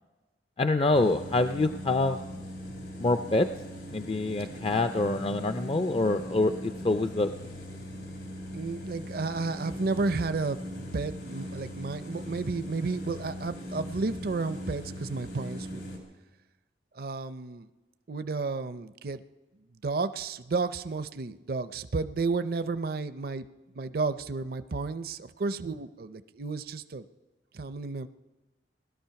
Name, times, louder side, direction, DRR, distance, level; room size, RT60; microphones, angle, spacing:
voice 1, 0.6-2.2 3.0-3.5 3.9-7.3, left 2 dB, 30° left, 9 dB, 0.4 m, -26 dB
sound 1, 0.9-16.0, equal, 80° left, 4.0 m, -40 dB
voice 2, 8.5-15.8 16.9-17.7 18.1-19.2 19.8-23.5 23.7-27.0 27.5-28.1, right 3 dB, 55° right, 12 dB, 0.5 m, -32 dB
19.0 x 12.5 x 5.8 m, 1.1 s
head